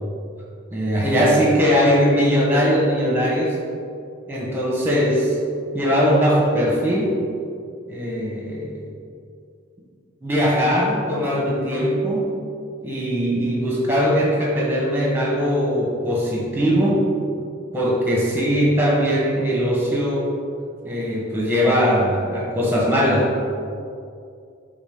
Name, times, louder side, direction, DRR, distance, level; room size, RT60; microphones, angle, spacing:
voice 1, 0.7-3.6 4.3-5.3 5.7-7.2 7.9-8.8 10.2-12.3 12.8-17.0 17.7-20.3 20.8-23.3, equal, 10° right, -4 dB, 1.4 m, -20 dB
10.0 x 3.9 x 3.9 m, 2.4 s
head